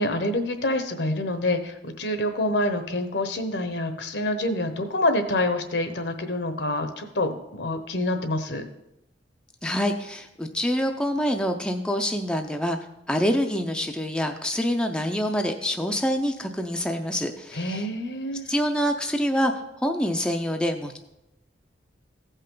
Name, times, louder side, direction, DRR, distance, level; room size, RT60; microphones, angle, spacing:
voice 1, 0.0-8.6 17.5-18.5, left 1 dB, 70° left, 8 dB, 1.0 m, -27 dB
voice 2, 9.6-12.8 13.1-17.8 18.5-19.5 19.8-21.0, equal, 5° left, 3 dB, 0.5 m, -26 dB
15.5 x 5.5 x 3.8 m, 0.88 s
head